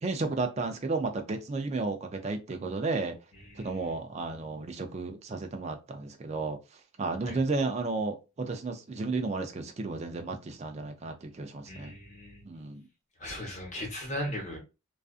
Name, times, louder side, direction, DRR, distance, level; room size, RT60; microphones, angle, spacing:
voice 1, 0.0-3.2 3.6-6.6 7.0-11.9 12.4-12.9, right 3 dB, 30° right, 0.4 m, -33 dB
voice 2, 3.4-3.7 7.2-7.4 11.7-12.4 13.2-14.6, equal, 35° left, 1.1 m, -37 dB
2.4 x 2.4 x 2.4 m
head